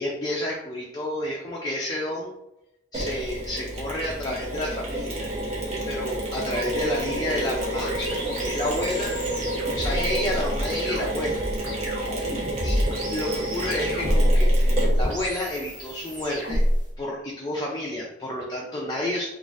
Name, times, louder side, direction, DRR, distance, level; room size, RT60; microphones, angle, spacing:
voice 1, 0.0-2.3 2.9-5.3 5.9-9.1 9.8-11.4 12.6-16.6 17.0-19.3, left 1 dB, 20° left, -3 dB, 0.4 m, -30 dB
Mechanisms, 2.9-15.3, right 1 dB, 35° right, 0.8 m, -30 dB
sound 1, 7.1-16.8, equal, 80° right, 1.3 m, -27 dB
4.0 x 2.4 x 2.4 m, 0.89 s
head